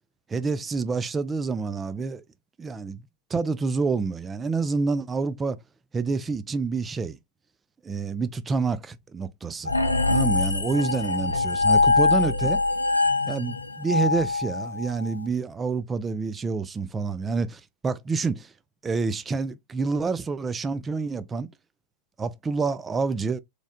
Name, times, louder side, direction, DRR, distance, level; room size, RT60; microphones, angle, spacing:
voice 1, 0.3-2.2 2.6-3.0 3.3-5.6 5.9-7.2 7.8-9.7 10.1-12.6 13.3-18.5 18.8-21.5 22.2-23.4, right 4 dB, 15° right, 0.3 m, -28 dB
sound 1, 9.7-15.1, left 3 dB, 85° left, 0.5 m, -23 dB
3.5 x 3.2 x 2.3 m
figure-of-eight pair, 90°, 0 cm